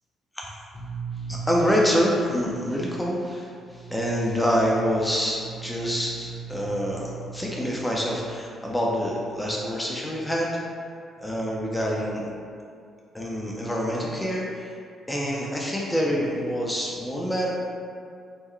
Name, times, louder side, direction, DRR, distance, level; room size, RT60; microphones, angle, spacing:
voice 1, 0.7-10.5 11.2-12.3 13.1-14.8 15.1-17.5, equal, 10° left, -3 dB, 0.5 m, -26 dB
3.6 x 2.1 x 3.2 m, 2.3 s
cardioid pair, 90°, 0 cm